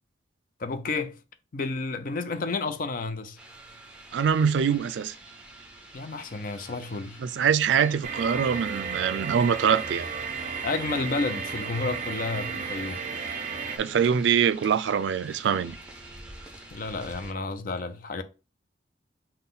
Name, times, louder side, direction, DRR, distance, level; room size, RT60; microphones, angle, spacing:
voice 1, 0.6-1.2 1.5-3.4 5.9-7.2 10.6-13.0 16.7-18.2, left 3 dB, 50° left, 0.5 m, -31 dB
sound 1, 3.4-17.3, right 1 dB, 5° right, 0.7 m, -47 dB
voice 2, 4.1-5.1 7.2-10.1 13.8-15.8, right 7 dB, 90° right, 0.3 m, -24 dB
sound 2, 8.0-13.8, right 5 dB, 45° right, 0.6 m, -33 dB
5.6 x 2.2 x 3.8 m
head